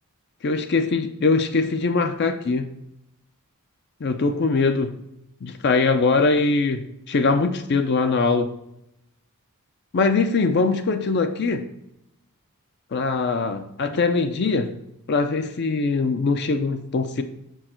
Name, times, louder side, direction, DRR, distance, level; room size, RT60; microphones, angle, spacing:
voice 1, 0.4-2.7 4.0-4.9 5.4-8.5 9.9-11.7 12.9-14.7 15.1-17.2, left 4 dB, 50° left, 8 dB, 0.4 m, -22 dB
6.6 x 4.6 x 4.3 m, 0.83 s
head